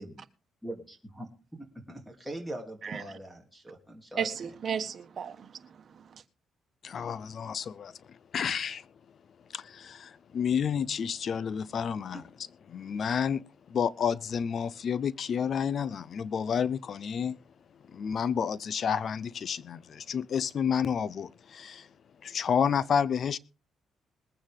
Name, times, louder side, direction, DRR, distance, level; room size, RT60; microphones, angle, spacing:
voice 1, 0.6-4.5 12.1-12.2, right 1 dB, ahead, 3.0 m, -42 dB
voice 2, 4.2-6.2, right 7 dB, 50° right, 1.5 m, -35 dB
voice 3, 6.8-8.9 9.5-12.2 12.7-17.4 17.9-21.9 22.2-23.4, left 7 dB, 55° left, 0.6 m, -30 dB
21.5 x 8.9 x 3.6 m
cardioid pair, 90°, 0 cm